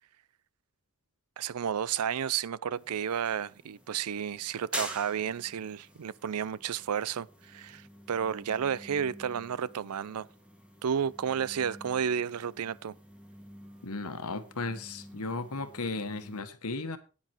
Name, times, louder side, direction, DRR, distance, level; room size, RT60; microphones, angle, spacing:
voice 1, 1.4-10.3 10.8-12.9, right 8 dB, 90° right, 0.5 m, -32 dB
sound 1, 2.7-16.4, equal, 5° right, 1.8 m, -47 dB
voice 2, 13.8-17.0, left 3 dB, 85° left, 1.4 m, -35 dB
10.0 x 9.4 x 4.5 m
head